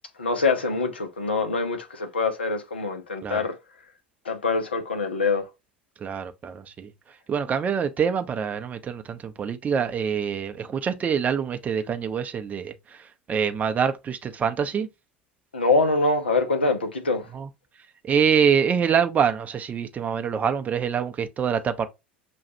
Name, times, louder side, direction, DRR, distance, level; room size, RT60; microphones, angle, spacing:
voice 1, 0.2-3.6 4.2-5.5 15.5-17.3, left 3 dB, 80° left, 0.7 m, -24 dB
voice 2, 6.0-6.9 7.3-14.9 17.3-17.5 18.0-21.9, right 7 dB, 25° right, 0.6 m, -25 dB
6.1 x 2.4 x 2.7 m
figure-of-eight pair, 75°, 6 cm